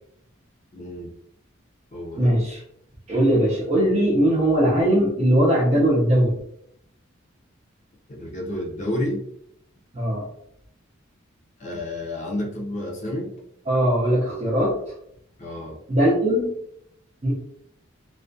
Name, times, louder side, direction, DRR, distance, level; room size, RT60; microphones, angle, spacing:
voice 1, 0.7-1.1 1.9-2.6 8.1-9.2 11.6-13.3 15.4-15.8, left 1 dB, 35° left, -2 dB, 0.5 m, -30 dB
voice 2, 2.2-2.6 3.1-6.3 9.9-10.2 13.7-14.9 15.9-16.5 17.2-17.3, right 1 dB, 30° right, -7 dB, 0.5 m, -20 dB
2.3 x 2.1 x 2.5 m, 0.71 s
head